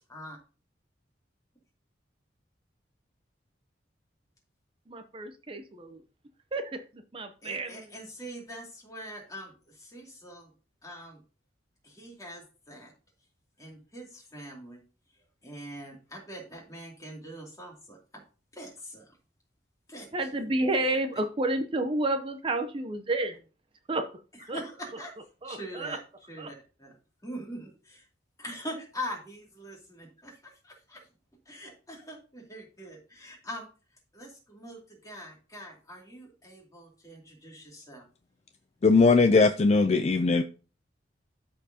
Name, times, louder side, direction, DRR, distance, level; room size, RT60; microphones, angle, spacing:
voice 1, 4.9-6.0 6.5-7.9 20.1-23.4 23.9-24.0 24.5-24.6 25.4-26.0 26.4-26.5, right 2 dB, 30° right, 7 dB, 0.7 m, -30 dB
voice 2, 7.4-10.5 10.8-11.2 11.8-12.9 13.6-14.8 15.4-18.2 18.5-19.2 19.9-20.1 24.5-25.1 25.4-26.0 26.3-27.0 27.2-28.1 28.4-31.1 31.5-33.7 34.1-38.0, equal, 20° left, -1 dB, 2.5 m, -43 dB
voice 3, 38.8-40.4, left 4 dB, 35° left, 8 dB, 0.4 m, -20 dB
13.0 x 4.5 x 2.8 m, 0.35 s
head